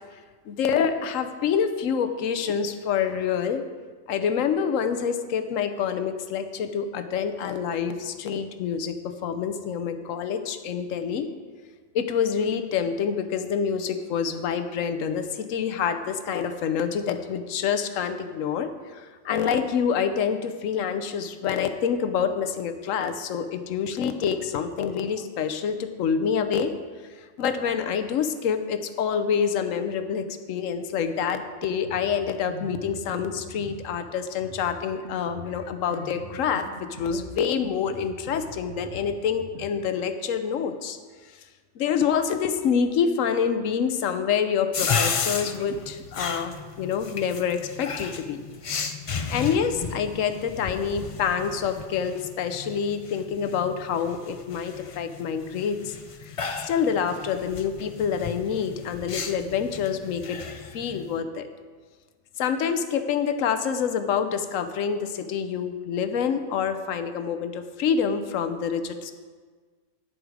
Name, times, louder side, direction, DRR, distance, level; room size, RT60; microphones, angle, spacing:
voice 1, 0.5-3.6 4.1-11.3 11.9-26.7 27.4-41.0 41.8-48.4 49.3-56.0 56.6-60.4 60.7-61.5 62.4-69.1, left 7 dB, 75° left, 9 dB, 1.1 m, -27 dB
Drum kit, 31.4-39.7, right 2 dB, 65° right, 1.7 m, -43 dB
sound 1, 44.7-61.2, left 5 dB, 55° left, 0.3 m, -34 dB
10.0 x 8.0 x 4.9 m, 1.5 s
omnidirectional pair, 1.4 m